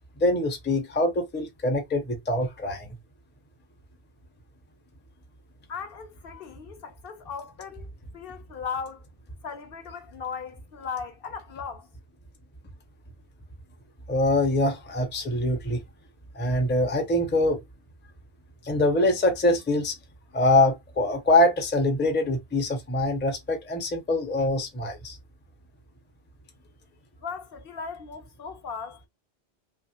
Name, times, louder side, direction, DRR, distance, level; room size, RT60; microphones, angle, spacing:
voice 1, 0.2-2.9 14.1-15.8 16.3-17.6 18.6-19.9 20.3-25.2, left 1 dB, 15° left, 0.5 m, -24 dB
voice 2, 5.7-7.9 8.1-9.0 9.4-11.9 27.2-29.1, left 6 dB, 65° left, 0.7 m, -37 dB
3.0 x 2.3 x 2.7 m
omnidirectional pair, 1.1 m